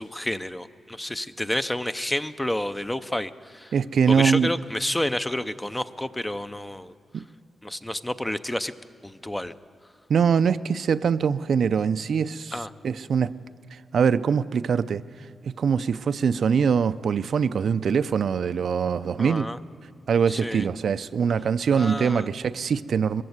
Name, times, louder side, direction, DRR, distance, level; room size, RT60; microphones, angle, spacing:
voice 1, 0.0-3.7 4.1-7.2 7.6-8.7 9.0-9.5 12.5-12.7 19.2-19.6 20.3-20.7 21.7-22.3, left 1 dB, 10° left, 12 dB, 0.5 m, -30 dB
voice 2, 3.7-4.5 7.1-7.2 10.1-12.5 12.8-13.3 13.7-15.0 15.4-19.5 20.1-23.2, right 6 dB, 60° right, 13 dB, 0.4 m, -23 dB
21.5 x 15.0 x 7.9 m, 2.6 s
wide cardioid pair, 130°, 0 cm